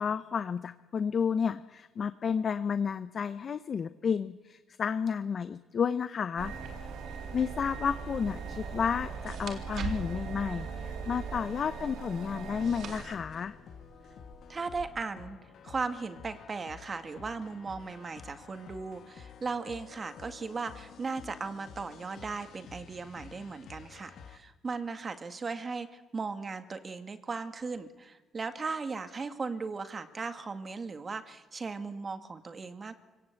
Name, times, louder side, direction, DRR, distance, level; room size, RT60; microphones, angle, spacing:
voice 1, 0.0-6.5 7.3-13.5, left 6 dB, 50° left, 12 dB, 0.8 m, -31 dB
sound 1, 6.4-13.0, right 5 dB, 85° right, 4.7 m, -40 dB
sound 2, 7.7-14.8, right 4 dB, 70° right, 3.4 m, -45 dB
sound 3, 12.3-24.4, left 7 dB, 70° left, 1.7 m, -51 dB
voice 2, 14.5-15.4 15.6-33.0, right 4 dB, 35° right, 9 dB, 2.0 m, -37 dB
24.5 x 18.0 x 8.3 m, 1.2 s
cardioid pair, 90°, 0 cm